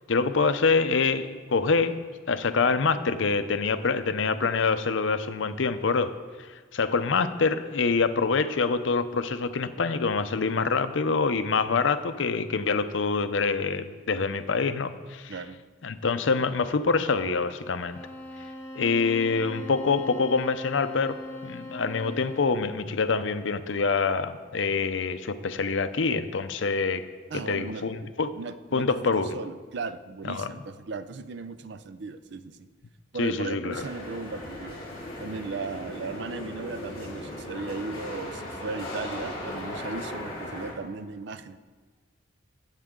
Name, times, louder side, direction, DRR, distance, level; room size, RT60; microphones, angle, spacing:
voice 1, 0.1-2.0 2.3-6.1 6.7-15.3 15.8-18.0 18.8-21.2 21.4-27.0 27.3-28.3 28.7-29.3 30.3-30.5 33.2-33.8, left 4 dB, 75° left, 11 dB, 0.6 m, -25 dB
sound 1, 17.8-22.7, left 1 dB, 10° left, 1.4 m, -41 dB
voice 2, 27.3-28.1 28.4-32.7 33.1-34.8 35.2-41.6, right 4 dB, 65° right, 12 dB, 0.5 m, -37 dB
sound 2, 33.7-40.7, left 1 dB, 30° left, 3.9 m, -37 dB
18.0 x 8.1 x 3.7 m, 1.5 s
head